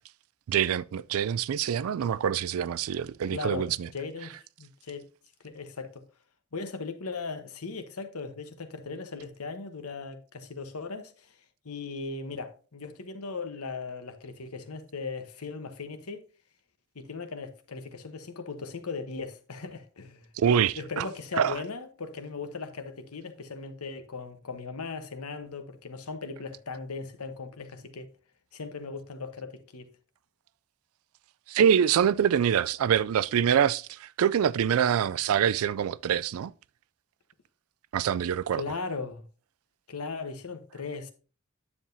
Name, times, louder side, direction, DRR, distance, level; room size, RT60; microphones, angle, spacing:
voice 1, 0.5-3.9 20.4-21.1 21.4-21.5 31.5-36.5 37.9-38.6, right 8 dB, 75° right, 0.3 m, -25 dB
voice 2, 3.3-5.0 5.4-6.0 6.5-11.3 11.6-16.2 16.9-20.3 20.8-28.1 28.5-29.9 38.6-39.2 39.9-41.1, left 4 dB, 85° left, 1.1 m, -38 dB
9.9 x 7.3 x 2.7 m
head